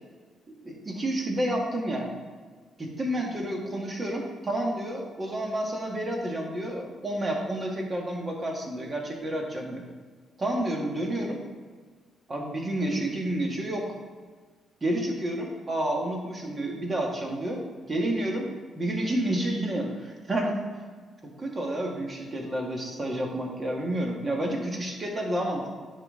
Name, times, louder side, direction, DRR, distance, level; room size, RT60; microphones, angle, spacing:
voice 1, 0.6-2.1 2.8-9.8 10.4-11.4 12.3-13.9 14.8-18.5 18.7-20.6 21.2-25.9, right 1 dB, 30° right, 0 dB, 1.6 m, -30 dB
9.7 x 3.9 x 3.8 m, 1.5 s
cardioid pair, 90°, 0 cm